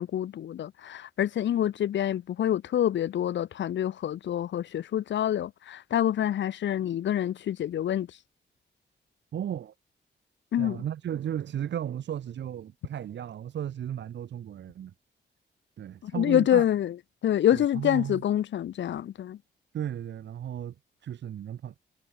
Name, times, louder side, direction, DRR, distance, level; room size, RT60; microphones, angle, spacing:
voice 1, 0.0-8.1 10.5-10.8 16.0-16.9 17.2-19.4, left 11 dB, 75° left, 0.5 m, -27 dB
voice 2, 9.3-9.7 10.6-14.9 15.8-16.7 17.5-18.2 19.7-20.7 21.0-21.7, right 10 dB, 75° right, 0.7 m, -35 dB
wide cardioid pair, 160°, 19 cm